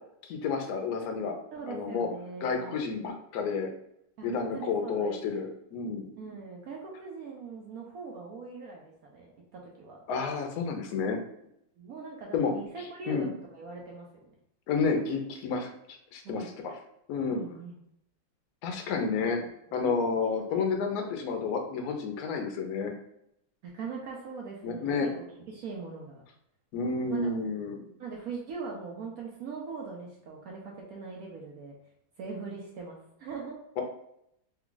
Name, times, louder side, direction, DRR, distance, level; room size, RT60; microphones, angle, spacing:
voice 1, 0.3-1.4 1.7-2.1 2.4-3.7 4.2-6.1 10.1-11.2 12.3-12.5 13.1-13.3 14.7-15.7 16.1-16.7 17.1-17.4 18.6-19.4 19.7-22.9 24.6-25.1 26.7-27.8 33.8-33.9, left 5 dB, 65° left, 4 dB, 1.0 m, -30 dB
voice 2, 1.5-2.9 4.2-5.2 6.2-10.0 11.8-14.3 16.2-16.5 17.3-17.8 19.2-19.3 23.6-25.1 25.5-26.2 27.1-27.3 28.0-31.7 32.2-33.6, right 4 dB, 65° right, -1 dB, 0.9 m, -41 dB
3.4 x 2.3 x 3.8 m, 0.77 s
omnidirectional pair, 2.0 m